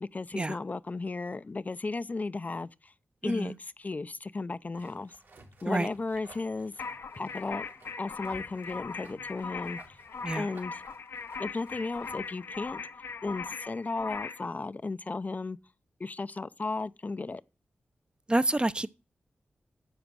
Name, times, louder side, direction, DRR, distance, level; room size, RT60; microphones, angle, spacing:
voice 1, 0.0-2.9 3.2-5.2 5.6-6.7 7.2-7.7 8.0-10.0 10.3-10.8 11.4-12.8 13.2-15.6 16.0-17.4, left 3 dB, 40° left, 0.5 m, -35 dB
voice 2, 3.2-3.5 5.7-5.9 10.2-10.5 18.3-18.9, right 2 dB, 20° right, 0.6 m, -28 dB
sound 1, 4.7-12.9, right 2 dB, 75° right, 3.8 m, -56 dB
sound 2, 6.8-14.5, left 5 dB, 75° left, 0.7 m, -40 dB
10.5 x 7.2 x 6.1 m
cardioid pair, 50°, 4 cm